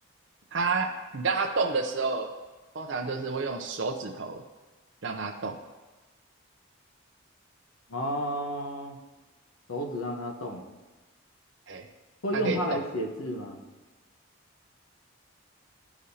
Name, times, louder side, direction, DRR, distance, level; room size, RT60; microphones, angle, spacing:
voice 1, 0.5-2.3 2.7-4.4 5.0-5.6 11.7-11.8 12.3-12.8, right 4 dB, 60° right, 2 dB, 0.5 m, -30 dB
voice 2, 7.9-9.0 9.7-10.6 12.2-13.6, equal, 90° left, 2 dB, 1.1 m, -31 dB
14.5 x 4.9 x 2.8 m, 1.2 s
head